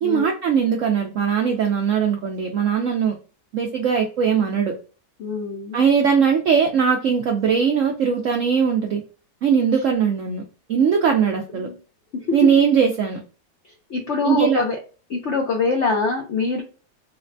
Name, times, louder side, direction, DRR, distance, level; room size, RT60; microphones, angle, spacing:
voice 1, 0.0-3.2 3.5-4.7 5.7-9.0 9.4-10.4 10.7-11.7 12.3-13.2 14.2-14.6, right 7 dB, 80° right, 2 dB, 0.7 m, -20 dB
voice 2, 5.2-5.8 11.5-11.7 12.1-12.5 13.9-14.8 15.1-16.6, left 4 dB, 75° left, 1 dB, 0.6 m, -24 dB
4.0 x 2.1 x 2.5 m, 0.36 s
omnidirectional pair, 1.9 m